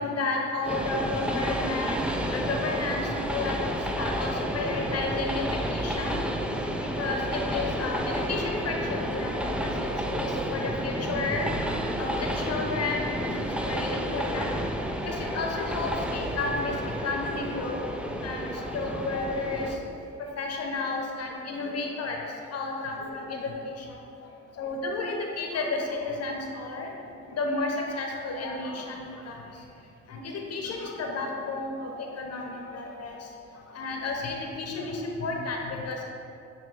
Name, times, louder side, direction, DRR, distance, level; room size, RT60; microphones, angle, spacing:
voice 1, 0.0-2.0 2.3-6.2 6.8-11.4 12.0-13.3 13.7-14.6 15.0-17.9 18.2-19.8 20.4-22.2 22.5-23.9 24.6-29.4 30.1-33.2 33.7-36.1, left 3 dB, 55° left, 1 dB, 0.9 m, -32 dB
Train, 0.6-19.8, equal, 5° right, 0.4 m, -31 dB
9.2 x 3.1 x 3.3 m, 2.6 s
cardioid pair, 90°, 30 cm